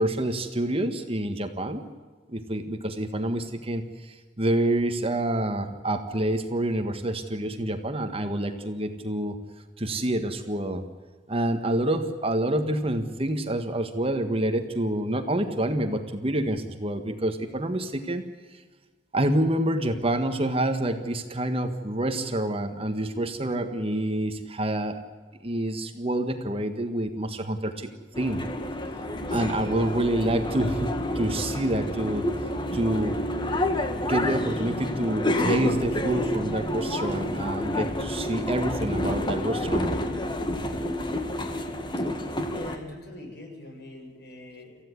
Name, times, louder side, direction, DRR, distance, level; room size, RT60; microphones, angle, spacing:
voice 1, 0.0-1.8 2.3-9.4 9.8-10.8 11.3-18.2 19.1-25.0 25.4-27.9 28.2-28.4 29.3-30.9 31.2-32.3 32.7-33.2 34.1-39.9, right 1 dB, 30° right, 7 dB, 1.7 m, -27 dB
sound 1, 28.1-42.8, left 1 dB, 25° left, 2.0 m, -29 dB
voice 2, 42.5-44.9, left 1 dB, 60° left, 2 dB, 7.6 m, -42 dB
27.0 x 15.5 x 9.7 m, 1.4 s
head